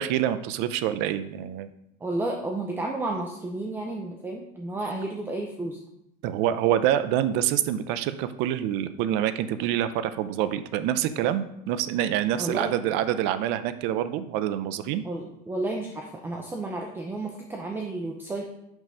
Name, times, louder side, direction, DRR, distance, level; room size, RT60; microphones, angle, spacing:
voice 1, 0.0-1.7 6.2-15.0, right 11 dB, 60° right, 12 dB, 0.6 m, -26 dB
voice 2, 2.0-5.8 12.4-12.7 15.0-18.5, right 2 dB, 10° right, 1 dB, 0.6 m, -32 dB
6.1 x 5.3 x 5.5 m, 0.80 s
cardioid pair, 155°, 20 cm